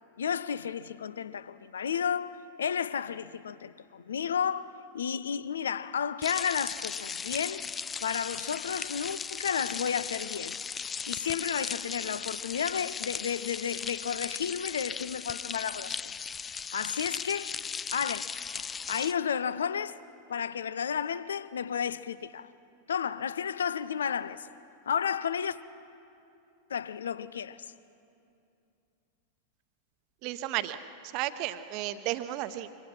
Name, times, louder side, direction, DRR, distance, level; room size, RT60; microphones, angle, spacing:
voice 1, 0.2-7.7 8.0-10.6 11.1-16.2 16.7-17.6 17.9-18.3 18.5-20.0 20.3-22.5 22.9-24.5 24.9-25.6 26.7-27.7, left 7 dB, 65° left, 0.6 m, -32 dB
sound 1, 6.2-19.1, left 6 dB, 20° left, 0.5 m, -37 dB
voice 2, 30.2-30.8 31.1-32.7, right 14 dB, 40° right, 1.0 m, -33 dB
26.0 x 24.5 x 5.7 m
figure-of-eight pair, 90°, 0 cm